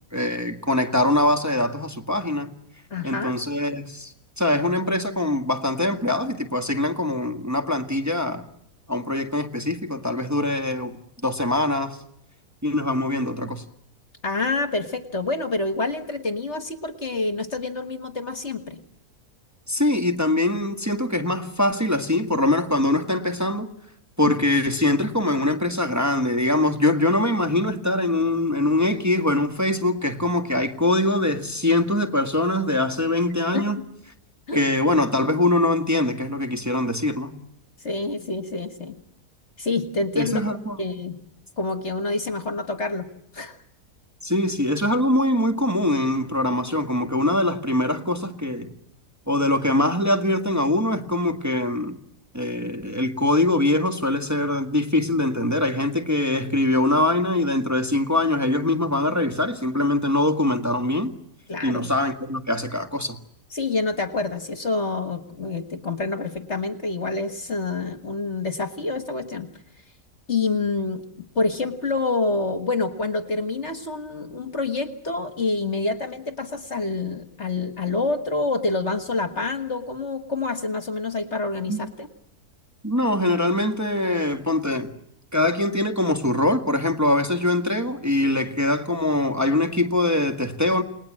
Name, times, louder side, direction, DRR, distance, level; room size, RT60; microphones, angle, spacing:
voice 1, 0.1-2.5 3.0-8.5 8.9-12.0 12.6-13.6 19.7-23.7 24.2-33.8 34.5-37.3 40.2-40.8 44.2-48.7 49.3-52.0 52.3-61.1 61.6-63.2 81.7-81.8 82.8-84.9 85.3-90.8, left 1 dB, 10° right, 1.8 m, -23 dB
voice 2, 2.9-3.3 14.2-18.8 24.2-24.3 33.5-33.8 34.5-34.7 37.8-39.0 39.6-40.4 40.8-41.2 41.6-43.1 43.3-43.6 61.5-61.9 63.5-69.5 70.3-71.0 71.4-82.1, left 3 dB, 45° left, 1.8 m, -27 dB
29.5 x 20.0 x 7.6 m
omnidirectional pair, 1.7 m